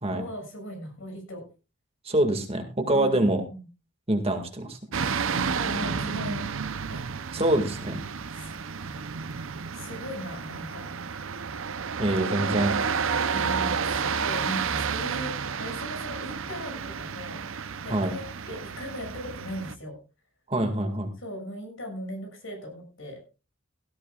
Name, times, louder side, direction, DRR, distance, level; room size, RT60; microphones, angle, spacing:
voice 1, 0.1-1.4 2.9-3.7 5.5-6.5 6.9-7.0 8.3-9.2 9.7-10.9 13.3-20.0 21.2-23.3, equal, 65° left, 3 dB, 6.6 m, -38 dB
voice 2, 2.1-3.4 4.1-4.8 7.3-8.0 12.0-12.8 17.9-18.1 20.5-21.1, right 1 dB, 30° right, 4 dB, 2.0 m, -25 dB
sound 1, 4.9-19.7, right 6 dB, 70° right, 0.7 m, -31 dB
17.0 x 14.0 x 2.4 m, 0.31 s
head